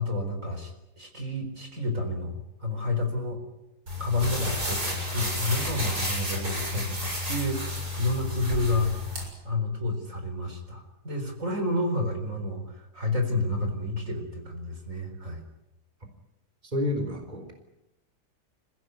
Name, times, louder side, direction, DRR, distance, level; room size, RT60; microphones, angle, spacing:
voice 1, 0.0-3.4 4.0-8.9 9.4-15.4, left 2 dB, 50° right, 4 dB, 4.6 m, -30 dB
sound 1, 3.9-9.2, left 1 dB, 70° right, 7.6 m, -31 dB
voice 2, 16.6-17.5, left 1 dB, 25° right, 5 dB, 4.1 m, -29 dB
29.5 x 16.5 x 9.5 m, 0.91 s
omnidirectional pair, 1.8 m